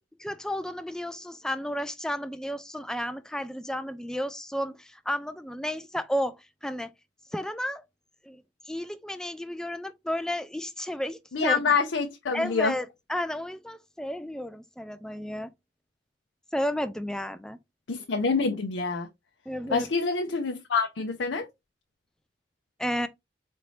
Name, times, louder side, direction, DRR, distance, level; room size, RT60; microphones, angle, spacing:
voice 1, 0.2-6.9 7.3-7.8 8.2-11.6 12.3-15.5 16.5-17.6 19.5-19.9 22.8-23.1, equal, 5° left, 0.4 m, -32 dB
voice 2, 11.3-12.7 17.9-19.1 19.7-21.5, left 4 dB, 90° left, 0.6 m, -26 dB
4.3 x 2.6 x 3.1 m
head